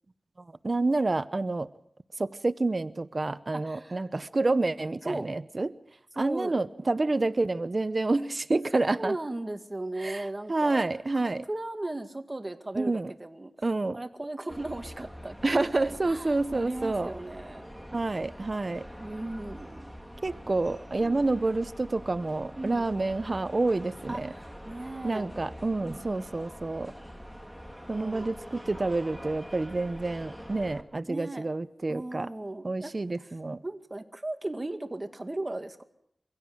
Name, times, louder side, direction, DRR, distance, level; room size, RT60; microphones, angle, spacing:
voice 1, 0.6-1.7 2.2-5.7 6.2-9.2 10.0-11.5 12.8-13.1 13.6-14.0 15.4-17.1 17.9-18.9 20.2-24.3 25.0-26.9 27.9-32.3 32.6-33.6, right 2 dB, 45° right, 15 dB, 0.8 m, -28 dB
voice 2, 3.5-4.0 5.0-5.3 6.1-6.6 8.7-10.8 11.1-13.5 13.9-17.7 19.0-19.9 21.0-21.3 22.6-22.9 24.1-25.3 25.8-26.5 27.9-28.3 31.1-31.5 31.9-33.3 33.6-35.8, right 2 dB, 30° right, 7 dB, 2.1 m, -37 dB
sound 1, 14.5-30.8, equal, ahead, 2.3 m, -45 dB
24.0 x 16.5 x 7.9 m, 0.73 s
wide cardioid pair, 60°, 0 cm